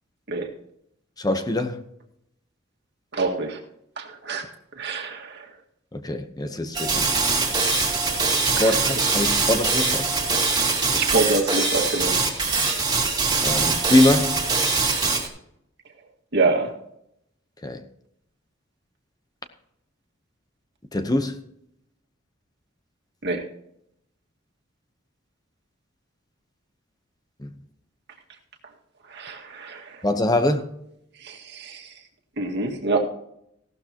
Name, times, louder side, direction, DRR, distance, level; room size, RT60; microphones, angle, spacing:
voice 1, 1.2-1.8 5.9-7.0 8.4-10.0 13.4-14.4 17.6-17.8 20.9-21.4 27.4-27.5 30.0-30.7, left 1 dB, 20° left, 0.9 m, -23 dB
voice 2, 3.1-3.6 4.0-5.5 8.6-9.4 10.5-12.2 16.3-16.8 23.2-23.5 29.1-30.1 31.2-32.0 32.4-33.0, right 3 dB, 60° right, 1.9 m, -27 dB
sound 1, 6.7-15.3, right 4 dB, 20° right, 2.4 m, -23 dB
16.0 x 12.0 x 2.9 m
head